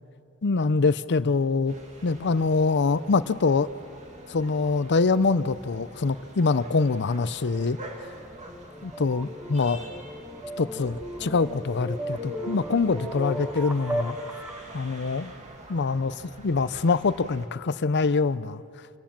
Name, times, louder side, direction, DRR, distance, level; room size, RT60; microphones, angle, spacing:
voice 1, 0.4-1.7 2.0-3.7 4.3-7.8 8.8-9.9 10.6-14.2 14.7-15.3 15.7-18.6, left 4 dB, 50° left, 15 dB, 0.6 m, -24 dB
sound 1, 1.7-17.5, right 1 dB, 35° right, 2.3 m, -47 dB
sound 2, 7.4-14.7, equal, 10° right, 1.4 m, -36 dB
29.0 x 17.5 x 7.4 m, 2.5 s
head